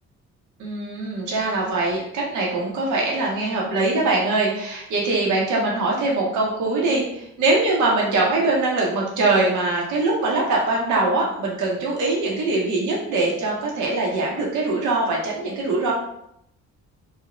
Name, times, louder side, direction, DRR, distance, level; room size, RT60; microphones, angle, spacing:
voice 1, 0.6-15.9, right 2 dB, 75° right, -3 dB, 0.7 m, -22 dB
2.5 x 2.0 x 2.9 m, 0.76 s
cardioid pair, 90°, 30 cm